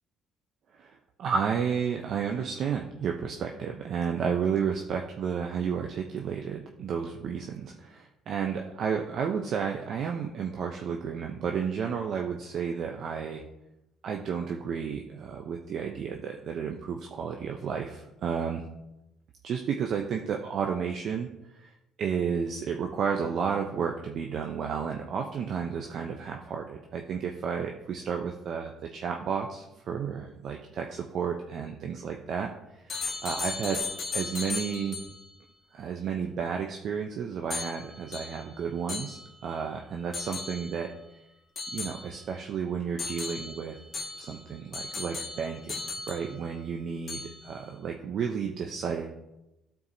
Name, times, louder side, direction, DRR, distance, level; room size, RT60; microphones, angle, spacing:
voice 1, 0.7-13.4 14.0-18.6 19.4-32.5 32.8-33.8 34.1-35.0 35.7-40.9 41.7-43.8 44.1-45.8 46.1-49.2, right 6 dB, 60° right, 2 dB, 0.6 m, -32 dB
sound 1, 32.9-35.3 37.5-39.6 40.1-40.9 41.6-42.5 43.0-46.7 47.1-47.6, left 4 dB, 45° left, 1.4 m, -37 dB
13.5 x 4.7 x 2.7 m, 0.93 s
cardioid pair, 90°, 0 cm